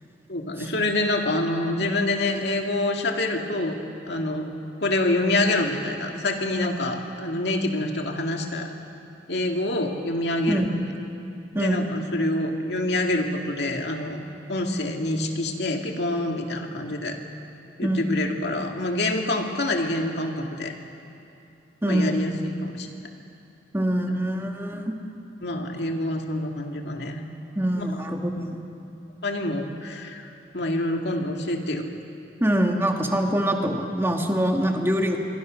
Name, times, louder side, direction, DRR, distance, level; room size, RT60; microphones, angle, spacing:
voice 1, 0.3-3.8 4.1-4.5 4.8-8.7 9.3-10.7 11.6-14.2 14.5-17.2 17.8-20.7 21.9-22.9 25.4-27.2 27.8-27.9 29.2-31.8, left 1 dB, 65° left, 2 dB, 2.4 m, -26 dB
voice 2, 11.5-11.9 17.8-18.3 21.8-22.2 23.7-25.0 27.6-28.7 32.4-35.2, equal, 15° right, 2 dB, 2.0 m, -24 dB
26.0 x 23.5 x 6.5 m, 2.7 s
head